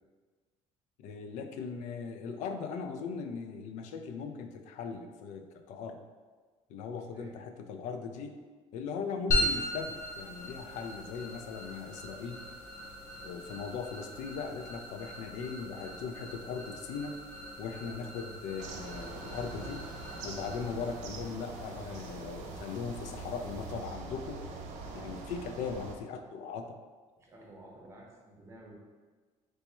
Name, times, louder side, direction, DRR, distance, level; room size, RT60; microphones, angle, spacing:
voice 1, 1.0-6.0 6.7-8.4 8.7-12.4 13.2-17.2 17.6-19.9 20.2-24.4 24.9-26.8, left 5 dB, 85° left, 6 dB, 0.4 m, -39 dB
sound 1, 9.3-24.0, left 1 dB, 20° left, 0.7 m, -39 dB
sound 2, 18.6-26.0, right 3 dB, 90° right, 0.5 m, -43 dB
voice 2, 27.2-28.7, right 1 dB, 25° right, -2 dB, 0.6 m, -52 dB
3.3 x 2.0 x 4.2 m, 1.4 s
cardioid pair, 160°, 12 cm